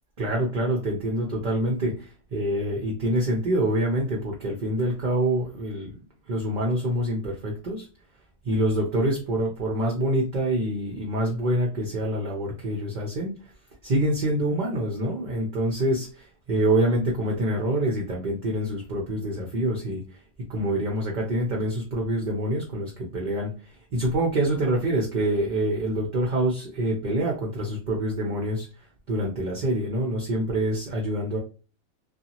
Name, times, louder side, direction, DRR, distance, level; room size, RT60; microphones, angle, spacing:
voice 1, 0.2-5.9 6.3-7.9 8.4-13.3 13.8-20.0 20.4-28.7 29.1-31.4, right 1 dB, 45° right, -1 dB, 0.7 m, -26 dB
2.8 x 2.4 x 2.7 m, 0.37 s
omnidirectional pair, 1.3 m